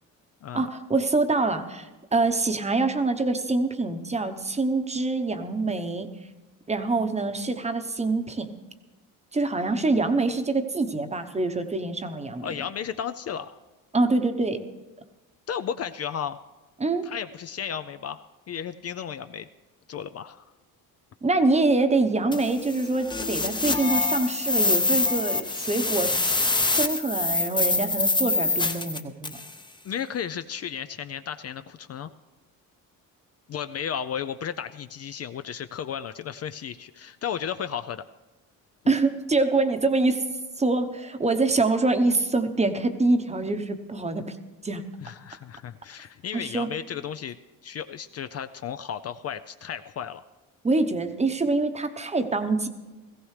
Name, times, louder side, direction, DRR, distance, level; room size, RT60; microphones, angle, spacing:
voice 1, 0.5-6.1 6.7-8.5 9.3-12.5 13.9-14.6 16.8-17.1 21.2-29.4 38.9-40.2 40.6-44.4 44.6-44.8 46.3-46.7 50.6-52.7, right 3 dB, 20° right, 8 dB, 0.9 m, -25 dB
voice 2, 12.4-13.6 15.5-16.4 17.0-19.5 19.9-20.4 29.8-32.1 33.5-38.0 45.0-47.4 47.6-50.2, left 8 dB, 45° left, 11 dB, 0.4 m, -34 dB
sound 1, 22.3-29.5, left 3 dB, 15° left, 0.7 m, -25 dB
18.0 x 15.5 x 3.2 m, 1.1 s
cardioid pair, 110°, 35 cm